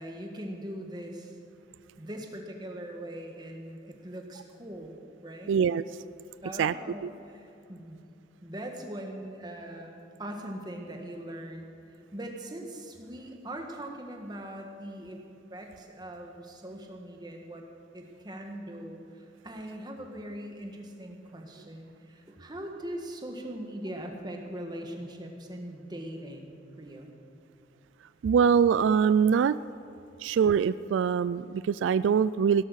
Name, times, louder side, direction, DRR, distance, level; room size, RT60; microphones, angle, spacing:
voice 1, 0.0-1.4 2.0-5.6 6.4-8.0 8.4-15.2 15.5-17.7 17.9-27.1, right 1 dB, 20° right, 2 dB, 1.6 m, -41 dB
voice 2, 5.5-5.8 6.6-6.7 28.2-29.6 30.2-32.6, right 7 dB, 85° right, 16 dB, 0.3 m, -23 dB
17.0 x 12.0 x 6.4 m, 2.7 s
head